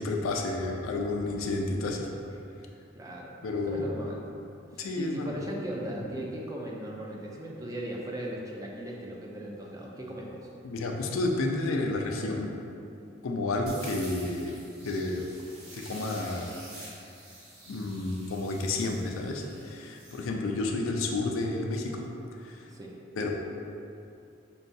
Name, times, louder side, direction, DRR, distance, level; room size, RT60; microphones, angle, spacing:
voice 1, 0.0-2.1 3.4-3.9 4.8-5.3 10.6-12.5 13.2-14.6 14.8-15.3 15.7-16.5 17.7-22.0 22.4-22.6 23.2-23.3, left 2 dB, 85° left, 1 dB, 0.4 m, -31 dB
voice 2, 2.9-3.3 3.7-4.2 4.7-10.5 22.7-22.9, right 1 dB, 15° right, -2 dB, 0.4 m, -38 dB
sound 1, 13.7-20.2, right 1 dB, 80° right, 1.1 m, -48 dB
5.4 x 2.3 x 2.6 m, 2.6 s
head